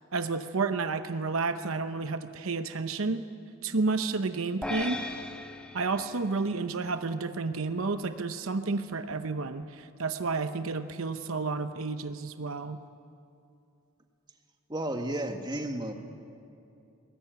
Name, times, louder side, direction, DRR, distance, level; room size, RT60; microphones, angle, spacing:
voice 1, 0.1-3.2 3.6-5.0 5.7-12.8, right 4 dB, 80° right, 9 dB, 0.8 m, -31 dB
sound 1, 4.6-7.1, left 2 dB, 5° left, 1.3 m, -38 dB
voice 2, 14.7-15.9, right 1 dB, 20° right, 4 dB, 1.7 m, -32 dB
21.5 x 20.0 x 9.2 m, 2.6 s
head